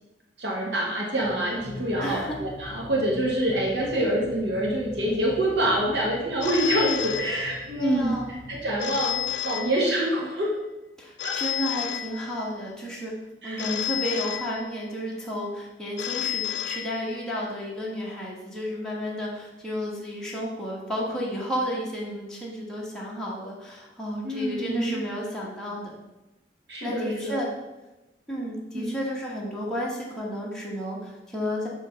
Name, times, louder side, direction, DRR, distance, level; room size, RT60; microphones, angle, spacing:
voice 1, 0.4-8.2 8.5-10.5 11.2-11.3 13.4-13.7 24.2-25.0 26.7-27.4 28.7-29.0, right 1 dB, 80° right, -3 dB, 1.4 m, -26 dB
sound 1, 1.2-9.9, left 2 dB, 45° left, 0.9 m, -43 dB
voice 2, 2.0-2.3 7.8-8.4 11.0-13.1 13.4-25.9 26.8-27.5 28.3-31.7, equal, 5° left, -5 dB, 1.2 m, -32 dB
Telephone, 6.4-7.9 8.8-10.3 11.2-12.7 13.6-15.1 16.0-17.5, left 12 dB, 75° left, 0.4 m, -32 dB
6.6 x 3.2 x 5.7 m, 1.0 s
head